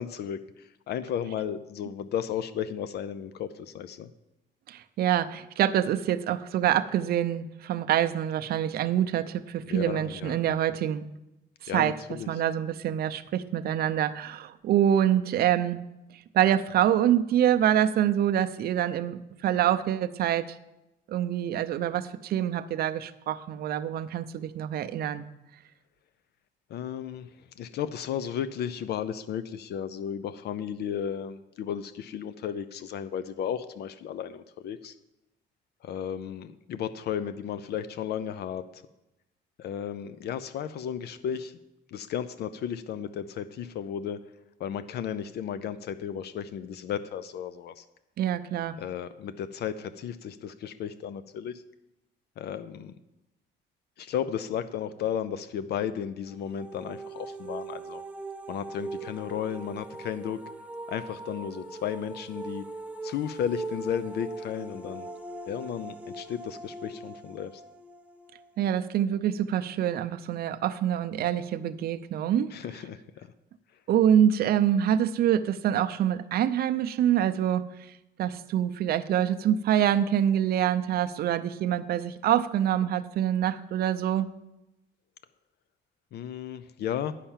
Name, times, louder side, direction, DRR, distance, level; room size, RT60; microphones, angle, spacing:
voice 1, 0.0-4.1 9.7-10.8 11.7-12.3 26.7-27.3 27.6-34.9 35.8-38.8 39.6-41.6 41.9-44.3 44.6-47.8 48.8-51.6 52.4-52.9 54.0-58.0 58.5-60.4 60.9-62.6 63.0-65.1 65.5-67.6 72.5-73.3 86.1-87.1, left 9 dB, 60° left, 13 dB, 0.5 m, -34 dB
voice 2, 4.7-11.0 11.6-11.9 12.3-15.8 16.3-20.6 21.1-25.2 48.2-48.8 68.6-72.5 73.9-77.6 78.2-84.3, right 10 dB, 55° right, 10 dB, 0.5 m, -25 dB
sound 1, 56.3-69.2, right 2 dB, 5° right, 0.6 m, -41 dB
10.0 x 5.7 x 7.3 m, 0.95 s
cardioid pair, 145°, 19 cm